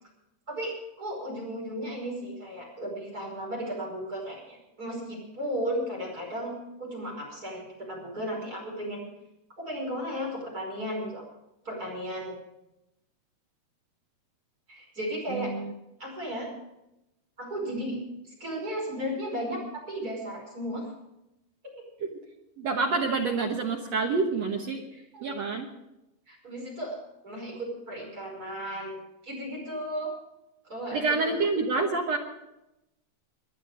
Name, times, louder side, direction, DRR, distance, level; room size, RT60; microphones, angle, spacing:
voice 1, 0.5-9.1 9.6-11.2 11.6-12.4 14.7-15.5 16.0-16.5 17.4-20.9 21.6-21.9 24.9-25.3 26.3-27.0 27.2-29.0 29.2-30.1 30.6-31.5, equal, 20° right, -2 dB, 5.5 m, -35 dB
voice 2, 15.3-15.7 22.0-22.1 22.6-24.8 25.2-25.7 30.9-32.2, right 4 dB, 70° right, 1 dB, 1.6 m, -27 dB
21.5 x 10.5 x 5.0 m, 0.90 s
omnidirectional pair, 4.8 m